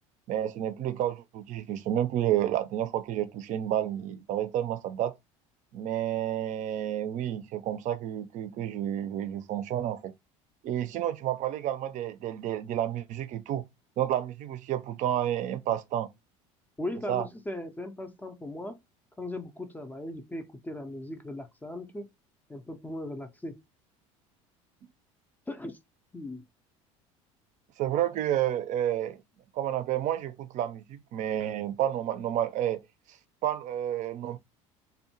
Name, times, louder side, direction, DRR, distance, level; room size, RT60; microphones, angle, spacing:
voice 1, 0.3-5.1 5.7-10.1 10.6-13.6 14.0-16.1 17.1-17.3 27.8-29.2 29.5-32.8 33.4-34.4, right 11 dB, 50° right, 0.4 m, -30 dB
voice 2, 16.8-18.7 19.2-22.1 22.5-23.6 25.5-25.8 26.1-26.4, left 1 dB, 10° left, 0.4 m, -38 dB
2.6 x 2.1 x 2.7 m
hypercardioid pair, 80°, 17 cm